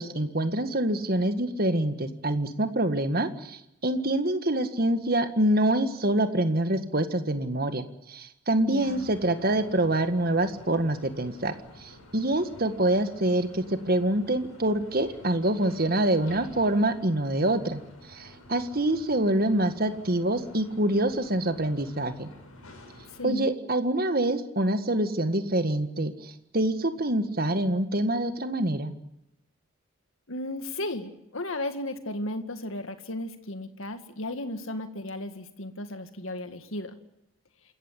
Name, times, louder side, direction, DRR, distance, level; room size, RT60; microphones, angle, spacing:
voice 1, 0.0-11.5 11.8-17.8 18.1-22.3 23.2-28.9, right 1 dB, 45° right, 9 dB, 1.8 m, -26 dB
voice 2, 8.6-9.1 23.2-23.5 30.3-37.0, left 1 dB, 65° left, 8 dB, 2.1 m, -35 dB
sound 1, 8.8-23.3, left 1 dB, 85° left, 6.5 m, -51 dB
27.5 x 14.5 x 9.9 m, 0.84 s
head